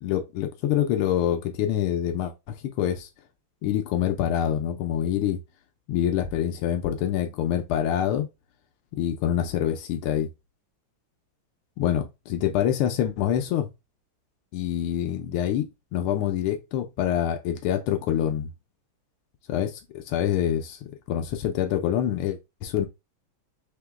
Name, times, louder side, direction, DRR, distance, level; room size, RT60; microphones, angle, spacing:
voice 1, 0.0-3.1 3.6-5.4 5.9-8.3 8.9-10.3 11.8-12.0 12.3-13.7 14.5-15.7 15.9-18.5 19.5-20.8 21.1-22.9, left 10 dB, 90° left, 1.6 m, -26 dB
4.4 x 2.9 x 3.4 m
omnidirectional pair, 2.4 m